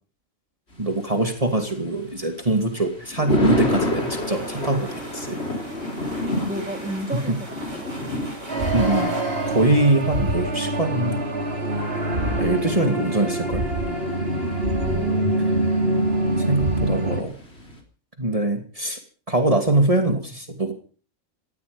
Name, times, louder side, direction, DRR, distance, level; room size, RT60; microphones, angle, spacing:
Thunder, 0.7-17.8, left 1 dB, 55° left, 4.5 m, -31 dB
voice 1, 0.8-5.4 8.7-9.2 9.5-11.2 12.4-14.0 16.4-17.3 18.2-19.0 19.3-20.7, right 2 dB, 25° right, 5 dB, 2.7 m, -23 dB
sound 1, 3.5-11.0, right 2 dB, 65° right, 6.7 m, -42 dB
voice 2, 5.7-6.0 6.4-7.9 11.6-11.9 12.2-12.9 14.8-15.6, right 1 dB, 5° right, 5 dB, 2.7 m, -35 dB
sound 2, 8.5-17.2, right 1 dB, 50° right, 4.1 m, -24 dB
18.0 x 15.0 x 5.3 m, 0.40 s
omnidirectional pair, 1.3 m